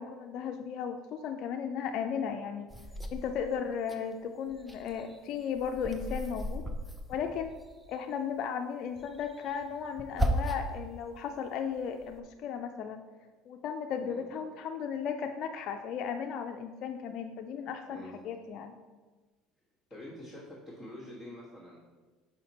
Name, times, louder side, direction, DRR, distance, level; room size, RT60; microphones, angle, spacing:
voice 1, 0.0-2.7 3.1-6.6 7.1-7.5 7.9-13.0 13.5-18.0 18.2-18.7, left 7 dB, 60° left, 4 dB, 0.4 m, -35 dB
sound 1, 2.7-4.0 4.4-7.9 9.0-10.8 11.3-12.2, equal, 5° right, 0.6 m, -36 dB
voice 2, 19.9-21.8, left 1 dB, 25° right, -7 dB, 1.6 m, -46 dB
5.7 x 4.2 x 4.2 m, 1.3 s
supercardioid pair, 100°, 0 cm